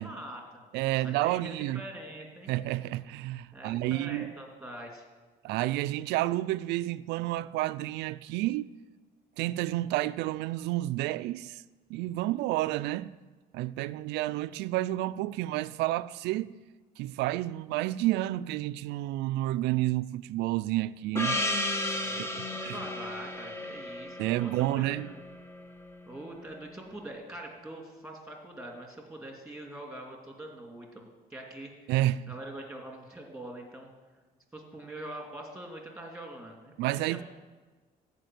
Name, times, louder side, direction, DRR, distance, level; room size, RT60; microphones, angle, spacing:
voice 1, 0.0-0.6 1.0-2.5 3.5-5.0 22.0-25.2 26.1-31.9 32.3-33.9 34.5-36.7 37.1-37.2, right 1 dB, 5° right, 2.7 m, -44 dB
voice 2, 0.7-1.8 2.5-4.3 5.4-8.7 9.4-11.6 11.9-13.2 13.5-16.6 17.0-21.4 21.9-22.8 24.2-25.1 31.9-32.3 36.8-37.2, right 16 dB, 90° right, 0.4 m, -30 dB
Gong, 21.1-25.9, left 1 dB, 15° left, 1.2 m, -34 dB
14.0 x 5.2 x 9.4 m
cardioid pair, 110°, 17 cm